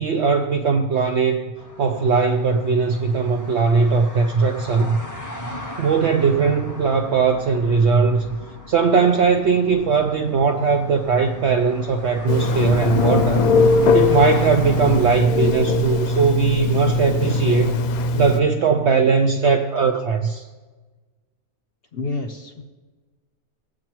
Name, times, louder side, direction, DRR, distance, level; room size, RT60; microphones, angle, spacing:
voice 1, 0.0-1.5 1.8-5.0 5.8-8.4 8.7-13.5 13.9-17.8 18.1-20.5, right 5 dB, 65° right, 4 dB, 0.7 m, -19 dB
sound 1, 1.6-15.2, left 1 dB, 20° left, 0.5 m, -36 dB
Telephone, 12.3-18.4, left 2 dB, 75° left, 1.0 m, -20 dB
voice 2, 21.9-22.6, left 3 dB, 50° left, 4 dB, 0.8 m, -29 dB
18.5 x 7.7 x 3.0 m, 1.3 s
omnidirectional pair, 1.6 m